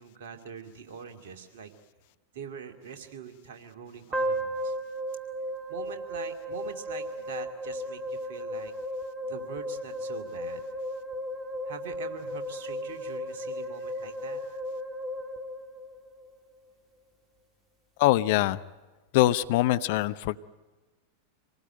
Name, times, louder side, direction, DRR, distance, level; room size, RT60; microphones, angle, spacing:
voice 1, 0.0-1.7 2.3-4.8 5.7-8.7 9.2-10.6 11.6-14.9, right 7 dB, 55° right, 5 dB, 2.4 m, -43 dB
sound 1, 4.1-16.3, equal, 20° right, 2.2 m, -35 dB
voice 2, 18.0-18.6 19.1-20.4, left 16 dB, 50° left, 14 dB, 0.7 m, -23 dB
26.5 x 19.0 x 9.0 m, 1.3 s
figure-of-eight pair, 90°, 0 cm